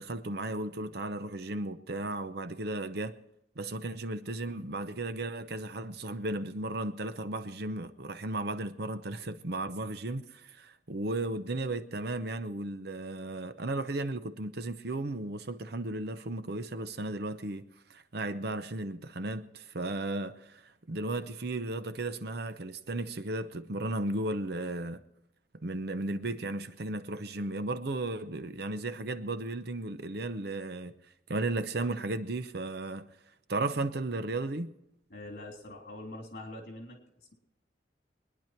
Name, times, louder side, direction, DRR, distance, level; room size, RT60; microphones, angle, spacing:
voice 1, 0.0-3.2 3.6-17.6 17.9-25.0 25.6-30.9 31.3-33.1 33.5-34.7, right 2 dB, 60° right, 0.8 m, -35 dB
voice 2, 35.1-37.0, left 1 dB, 55° left, 3.4 m, -43 dB
23.0 x 10.0 x 4.5 m
head